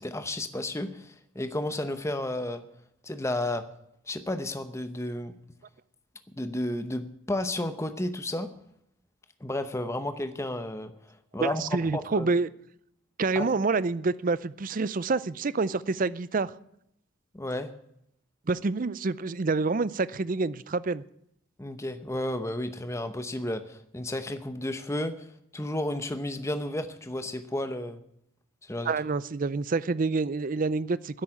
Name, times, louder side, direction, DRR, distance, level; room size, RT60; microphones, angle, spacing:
voice 1, 0.0-2.6 3.0-3.6 4.1-5.3 6.4-8.5 9.4-10.9 11.3-12.3 13.3-13.5 17.3-17.7 21.6-28.0 28.6-28.9, left 1 dB, 15° left, 0.8 m, -32 dB
voice 2, 11.4-12.5 13.2-16.5 18.5-21.0 28.8-31.2, right 3 dB, 40° right, 0.5 m, -27 dB
10.5 x 8.3 x 10.0 m
head